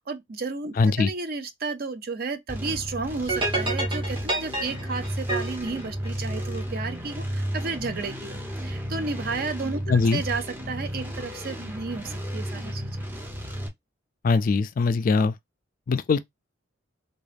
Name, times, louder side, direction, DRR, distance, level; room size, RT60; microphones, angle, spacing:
voice 1, 0.0-9.8 10.1-12.9, right 4 dB, 50° right, 0.6 m, -32 dB
voice 2, 0.8-1.1 9.9-10.2 14.2-15.3 15.9-16.2, left 4 dB, 45° left, 0.3 m, -21 dB
sound 1, 2.5-13.7, equal, 10° right, 0.6 m, -33 dB
sound 2, 3.3-6.7, right 2 dB, 25° right, 1.1 m, -29 dB
3.7 x 2.3 x 3.3 m
head